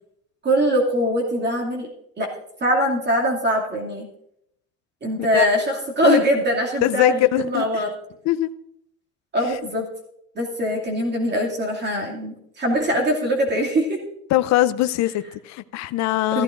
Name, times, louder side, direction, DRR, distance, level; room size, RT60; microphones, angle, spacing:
voice 1, 0.4-1.9 2.2-2.3 2.6-4.1 5.0-7.9 9.3-9.8 10.4-14.0 16.3-16.4, equal, 35° right, 2.6 m, -22 dB
voice 2, 6.8-7.8 8.2-8.5 9.5-9.6 14.3-16.4, left 15 dB, 60° left, 0.6 m, -21 dB
15.0 x 14.0 x 2.6 m
cardioid pair, 130°, 31 cm